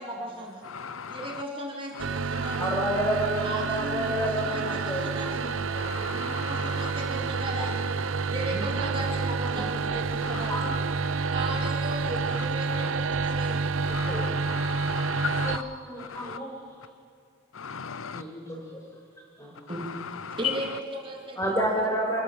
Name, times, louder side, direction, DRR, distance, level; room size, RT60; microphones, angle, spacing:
voice 1, 0.0-0.6 1.1-2.8 3.4-5.7 6.1-7.9 8.3-10.8 11.3-13.7 19.7-19.8 20.4-21.4 21.8-21.9, right 1 dB, 25° right, 0 dB, 3.0 m, -36 dB
voice 2, 0.6-1.3 5.8-6.9 10.2-10.5 11.6-11.7 13.9-15.6 16.1-16.4 17.6-18.2 20.2-20.5, left 7 dB, 80° left, 14 dB, 0.7 m, -36 dB
sound 1, 2.0-15.6, right 4 dB, 80° right, 0.7 m, -29 dB
voice 3, 2.6-5.0 5.7-6.1 7.2-7.3 7.6-7.7 8.5-8.6 9.5-9.9 10.5-10.7 11.0-11.1 13.8-14.5 15.4-16.5 18.1-18.6 19.4-19.8 21.4-22.2, right 1 dB, 15° left, -2 dB, 5.5 m, -30 dB
27.0 x 15.5 x 7.4 m, 2.4 s
head